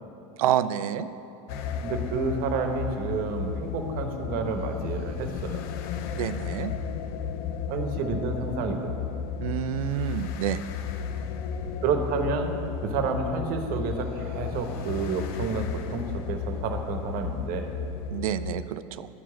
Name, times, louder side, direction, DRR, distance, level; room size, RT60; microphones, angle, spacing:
voice 1, 0.4-1.1 6.1-6.7 9.4-10.6 18.1-19.1, right 11 dB, 80° right, 13 dB, 0.4 m, -28 dB
sound 1, 1.5-18.6, left 7 dB, 55° left, 0.6 m, -33 dB
voice 2, 1.8-5.6 7.7-8.9 11.8-17.7, right 4 dB, 55° right, 5 dB, 1.1 m, -30 dB
10.5 x 4.7 x 7.2 m, 2.7 s
hypercardioid pair, 95°, 18 cm